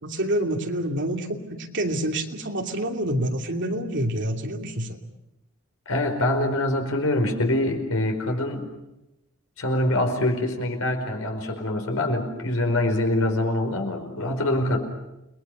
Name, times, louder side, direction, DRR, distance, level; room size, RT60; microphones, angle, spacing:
voice 1, 0.0-5.0, right 1 dB, 60° right, 3 dB, 2.8 m, -27 dB
voice 2, 5.9-8.7 9.6-14.8, left 1 dB, 75° left, 4 dB, 4.9 m, -24 dB
30.0 x 20.5 x 6.7 m, 0.93 s
head